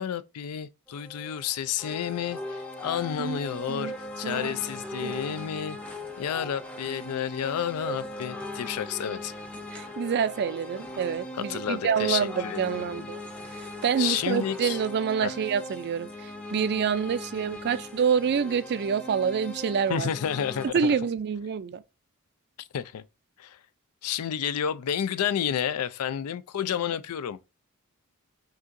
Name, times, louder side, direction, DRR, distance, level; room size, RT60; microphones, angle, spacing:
voice 1, 0.0-9.3 11.3-13.1 14.0-14.8 15.2-15.4 19.9-21.0 22.7-23.0 23.4-23.6 24.0-27.4, left 9 dB, 80° left, 0.4 m, -31 dB
sound 1, 0.9-20.7, left 1 dB, 5° left, 0.6 m, -39 dB
voice 2, 4.2-4.6 5.0-5.5 9.7-13.2 13.5-20.1 20.7-21.8, right 7 dB, 50° right, 0.4 m, -27 dB
6.0 x 2.8 x 2.5 m
head